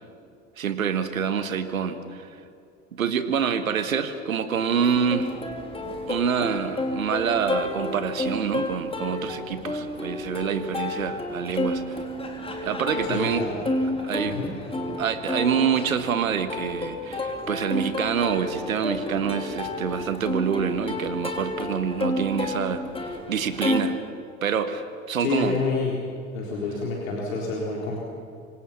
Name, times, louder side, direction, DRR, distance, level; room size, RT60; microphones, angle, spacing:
voice 1, 0.6-2.3 2.9-5.3 6.1-12.0 12.6-13.4 14.0-14.4 15.0-24.0 24.4-25.6, right 7 dB, 80° right, 11 dB, 1.6 m, -26 dB
Plucked string instrument, 4.8-23.8, left 1 dB, 15° left, 3.4 m, -31 dB
voice 2, 13.0-13.5 14.2-14.5 25.2-26.0 26.3-28.0, left 4 dB, 70° left, -3 dB, 4.0 m, -28 dB
26.5 x 25.5 x 5.9 m, 2.5 s
figure-of-eight pair, 75°, 41 cm